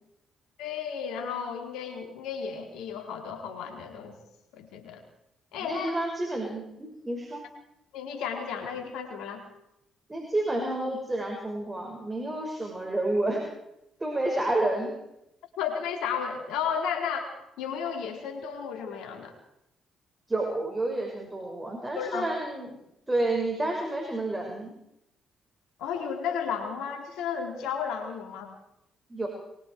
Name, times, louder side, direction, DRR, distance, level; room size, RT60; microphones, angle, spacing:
voice 1, 0.6-4.2 4.6-5.0 5.5-5.9 7.9-9.4 15.6-17.3 17.6-19.3 22.0-22.3 25.8-28.5, left 7 dB, 75° left, 3 dB, 4.5 m, -33 dB
voice 2, 5.6-7.4 10.1-13.5 14.0-14.9 20.3-22.8 23.1-24.7 29.1-29.3, right 2 dB, 20° right, 1 dB, 5.9 m, -30 dB
24.0 x 23.5 x 4.8 m, 0.85 s
hypercardioid pair, 50°, 0 cm